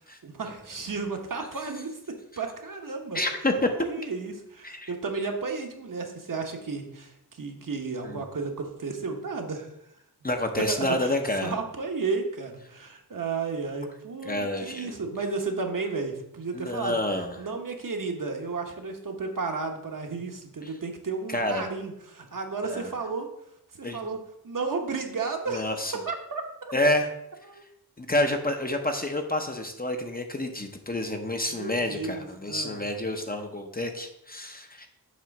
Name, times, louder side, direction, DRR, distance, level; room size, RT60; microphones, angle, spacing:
voice 1, 0.2-3.2 3.8-9.7 10.7-11.1 11.4-17.0 17.4-23.3 23.8-24.2 24.4-25.7 26.1-26.4 27.5-27.6 31.5-32.8, right 4 dB, 55° right, 3 dB, 1.1 m, -33 dB
voice 2, 3.1-3.7 4.6-4.9 8.0-8.2 10.2-11.6 14.2-15.0 16.5-17.4 21.3-21.7 22.7-22.9 23.8-24.1 25.5-25.9 26.7-27.1 28.0-34.9, left 1 dB, 25° left, 4 dB, 0.7 m, -28 dB
7.5 x 3.1 x 5.9 m, 0.79 s
wide cardioid pair, 100°, 39 cm